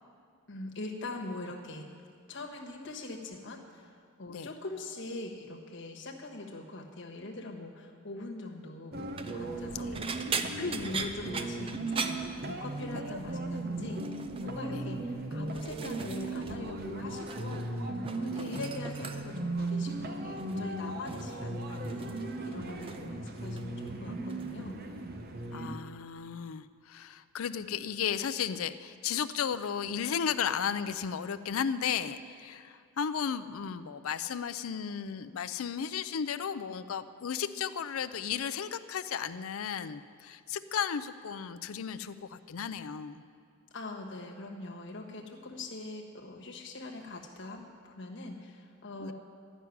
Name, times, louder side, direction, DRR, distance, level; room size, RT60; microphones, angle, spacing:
voice 1, 0.5-1.9 2.3-3.9 4.2-9.0 9.3-10.2 10.6-17.8 18.1-24.8 43.7-49.1, left 2 dB, 60° left, 1 dB, 1.4 m, -42 dB
sound 1, 8.9-25.8, right 2 dB, 45° right, 0.8 m, -37 dB
sound 2, 9.0-9.4 9.9-13.0 13.3-13.6 14.0-14.5 15.1-16.6 16.8-17.7 18.0-19.5 20.4-20.7 21.1-23.1 23.4-23.9 24.3-24.5 25.8-25.9, right 5 dB, 25° right, 0.5 m, -40 dB
voice 2, 25.5-43.2 49.0-49.1, left 7 dB, 80° left, 11 dB, 0.4 m, -34 dB
12.0 x 6.1 x 9.4 m, 2.2 s
head